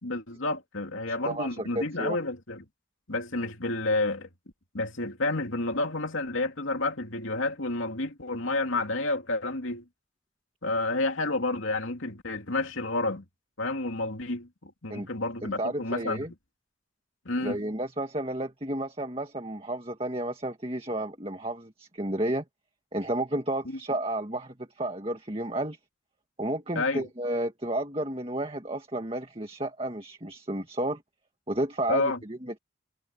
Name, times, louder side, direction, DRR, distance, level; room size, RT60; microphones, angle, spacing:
voice 1, 0.0-2.6 3.1-4.3 4.7-9.8 10.6-13.2 13.6-16.3 17.2-17.6 23.6-23.8 26.7-27.1 31.9-32.2, left 2 dB, 80° left, 2.7 m, -30 dB
voice 2, 1.1-2.2 14.9-15.1 15.4-16.3 17.4-22.4 22.9-25.8 26.4-31.0 31.5-32.6, right 1 dB, 30° right, 1.9 m, -32 dB
head